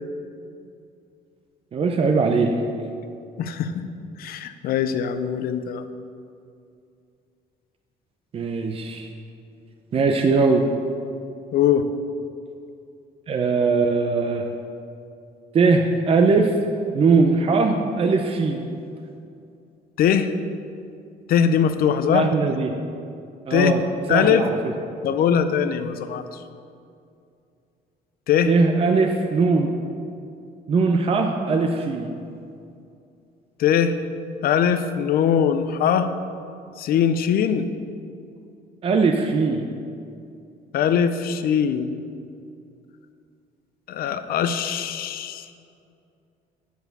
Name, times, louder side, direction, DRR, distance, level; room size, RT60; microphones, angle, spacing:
voice 1, 1.7-2.6 8.3-9.1 9.9-10.6 13.3-14.5 15.5-16.5 16.9-18.6 22.1-22.7 23.5-23.8 24.1-24.6 28.5-29.7 30.7-32.1 38.8-39.7, right 4 dB, 35° right, 4 dB, 0.6 m, -20 dB
voice 2, 3.4-3.7 4.2-5.8 11.5-11.9 20.0-20.3 21.3-22.3 23.5-23.7 24.1-24.4 25.0-26.2 28.3-28.5 33.6-34.0 34.4-36.1 36.8-37.7 40.7-41.9 43.9-45.5, left 8 dB, 60° left, 10 dB, 0.5 m, -21 dB
7.8 x 4.8 x 6.6 m, 2.5 s
cardioid pair, 110°, 17 cm